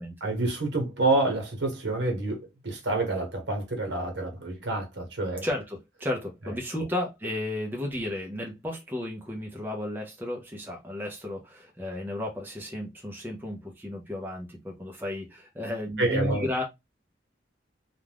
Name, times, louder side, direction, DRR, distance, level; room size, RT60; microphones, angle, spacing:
voice 1, 0.2-5.4 16.0-16.5, right 2 dB, 70° right, 1.0 m, -28 dB
voice 2, 5.4-16.6, left 1 dB, 10° right, 0.5 m, -33 dB
2.4 x 2.2 x 3.3 m
head